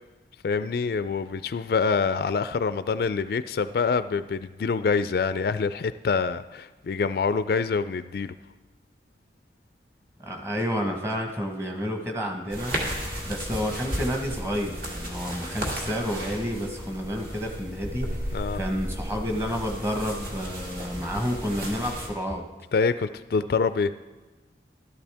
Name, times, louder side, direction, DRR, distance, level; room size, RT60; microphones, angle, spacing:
voice 1, 0.4-8.3 18.3-18.6 22.7-23.9, left 5 dB, 60° left, 13 dB, 0.3 m, -26 dB
voice 2, 10.2-12.8 13.2-22.4, equal, 15° right, 2 dB, 1.1 m, -30 dB
sound 1, 12.5-22.1, equal, 55° right, 2.2 m, -34 dB
13.0 x 12.5 x 3.5 m, 1.2 s
head